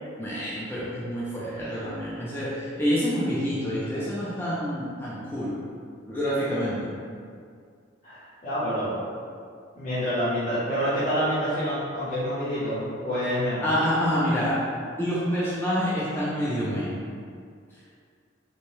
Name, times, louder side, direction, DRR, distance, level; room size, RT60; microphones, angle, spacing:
voice 1, 0.2-5.6 6.1-6.9 13.6-14.5 15.0-16.9, equal, 10° left, -9 dB, 0.3 m, -27 dB
voice 2, 8.0-9.0 9.8-13.7, equal, 40° left, -14 dB, 0.7 m, -27 dB
2.6 x 2.1 x 3.0 m, 2.2 s
head